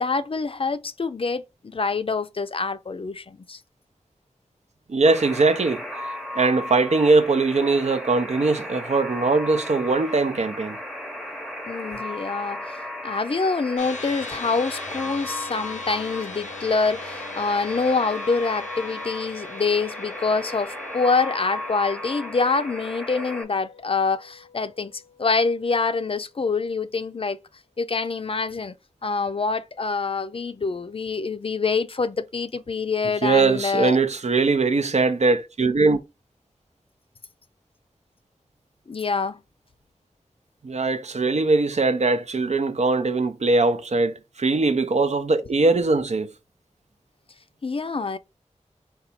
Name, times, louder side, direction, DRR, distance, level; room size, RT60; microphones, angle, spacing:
voice 1, 0.0-3.6 11.7-12.8 13.0-24.9 25.2-27.4 27.8-28.8 29.0-34.0 38.9-39.4 47.6-48.2, left 4 dB, 50° left, 0.4 m, -25 dB
voice 2, 4.9-5.9 6.3-10.8 33.2-36.0 40.6-46.3, right 3 dB, 65° right, 0.5 m, -21 dB
Alarm, 5.1-23.4, left 1 dB, ahead, 0.8 m, -35 dB
sound 1, 13.8-26.3, left 5 dB, 85° left, 0.6 m, -42 dB
4.0 x 2.3 x 4.2 m
wide cardioid pair, 70°, 12 cm